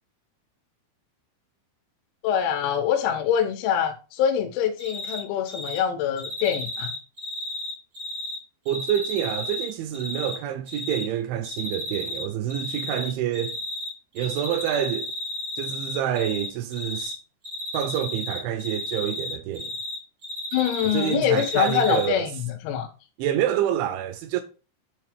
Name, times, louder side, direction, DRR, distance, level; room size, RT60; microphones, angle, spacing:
voice 1, 2.2-6.9 20.5-22.3 22.6-22.9, left 9 dB, 85° left, 3.6 m, -24 dB
Cricket, 4.8-5.2 5.5-5.8 6.2-8.3 8.6-10.3 10.7-11.0 11.4-12.2 12.5-13.9 14.1-16.5 16.7-17.1 17.4-19.9 20.2-22.0, left 2 dB, 70° right, 1.1 m, -33 dB
voice 2, 8.7-13.6 14.2-15.1 15.6-17.2 17.7-19.7 20.8-22.3 23.2-24.4, right 10 dB, 85° right, 2.7 m, -27 dB
10.0 x 3.6 x 4.9 m
omnidirectional pair, 6.0 m